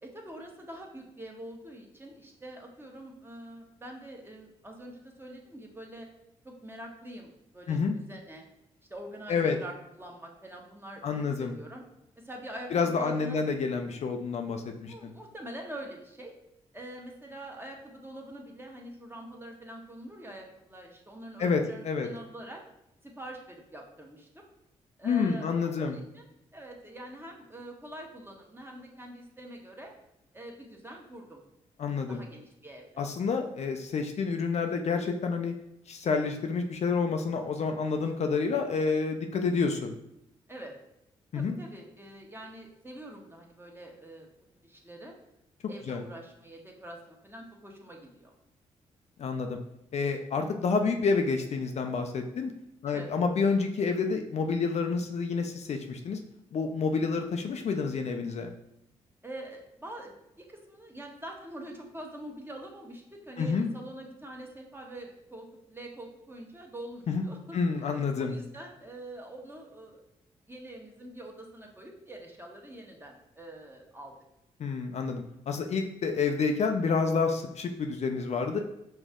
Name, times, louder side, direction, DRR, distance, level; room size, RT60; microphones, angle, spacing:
voice 1, 0.0-6.1 6.4-8.4 8.9-11.8 12.1-13.4 14.9-16.3 16.7-22.6 23.0-24.4 25.0-29.9 30.3-31.4 32.1-32.9 39.4-39.5 40.5-40.7 41.3-44.3 44.6-45.1 45.7-48.3 52.9-53.1 59.2-67.6 68.2-70.0 70.5-74.1, right 1 dB, 15° right, 0 dB, 1.3 m, -45 dB
voice 2, 11.0-11.5 12.7-15.1 21.4-22.1 25.0-26.0 31.8-32.2 33.0-35.5 35.9-39.9 41.3-41.6 45.9-46.0 49.2-49.6 49.9-52.5 52.8-56.2 56.5-58.5 63.4-63.7 67.1-67.3 67.5-68.4 74.6-78.6, left 5 dB, 55° left, 5 dB, 0.5 m, -29 dB
5.2 x 2.6 x 3.6 m, 0.84 s
supercardioid pair, 50°, 13 cm